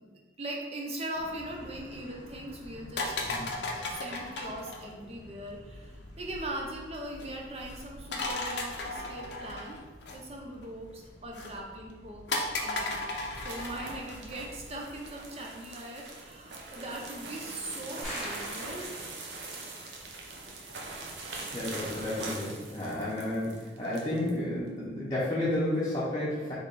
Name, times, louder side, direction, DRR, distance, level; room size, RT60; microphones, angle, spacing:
voice 1, 0.0-3.4 3.8-9.8 10.1-13.0 13.3-18.9, right 1 dB, 35° right, 0 dB, 0.6 m, -40 dB
sound 1, 1.1-14.8, left 2 dB, 80° left, 0.6 m, -38 dB
sound 2, 12.7-24.4, right 3 dB, 80° right, 0.7 m, -43 dB
sound 3, 18.0-19.5, equal, 5° left, 1.4 m, -40 dB
voice 2, 21.5-26.5, left 1 dB, 20° left, -9 dB, 0.7 m, -31 dB
3.5 x 3.3 x 4.0 m, 1.4 s
head